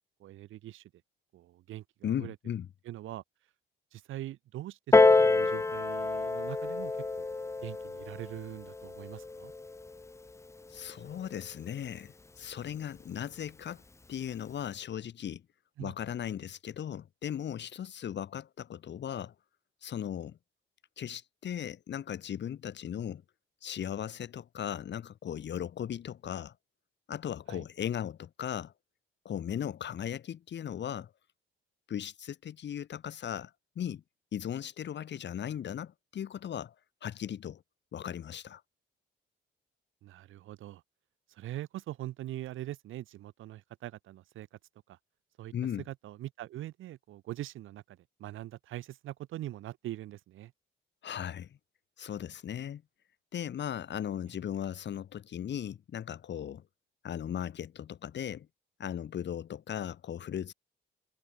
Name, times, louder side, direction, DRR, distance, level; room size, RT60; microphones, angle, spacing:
voice 1, 0.2-0.9 1.3-2.4 2.8-3.2 3.9-7.3 7.6-9.5 15.8-15.9 27.5-27.6 40.0-40.8 41.3-44.6 44.9-45.0 45.4-45.5 45.9-50.5, right 14 dB, 85° right, 7.3 m, -43 dB
voice 2, 2.0-2.7 10.7-13.8 14.1-15.4 15.8-19.3 19.8-20.4 21.0-23.2 23.6-26.5 27.1-28.7 29.2-31.1 31.9-34.0 34.3-36.7 37.0-37.6 37.9-38.6 45.5-45.8 51.0-51.6 52.0-52.8 53.3-56.6 57.0-58.5 58.8-60.5, left 9 dB, 65° left, 6.6 m, -37 dB
Piano, 4.9-10.1 10.9-11.0, left 3 dB, 15° left, 0.6 m, -27 dB
cardioid pair, 90°, 20 cm